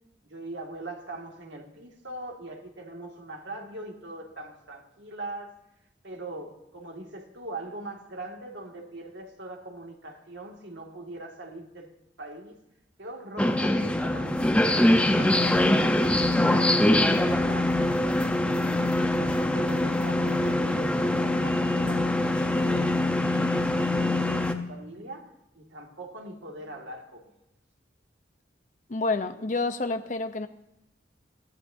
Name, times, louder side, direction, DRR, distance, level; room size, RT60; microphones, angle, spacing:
voice 1, 0.3-5.5 6.0-12.6 13.0-17.9 18.4-25.3 25.6-27.3, right 2 dB, 90° right, 2.2 m, -42 dB
sound 1, 13.4-24.5, left 1 dB, 5° left, 0.9 m, -23 dB
voice 2, 28.9-30.5, left 3 dB, 45° left, 0.8 m, -28 dB
23.0 x 14.5 x 2.8 m
head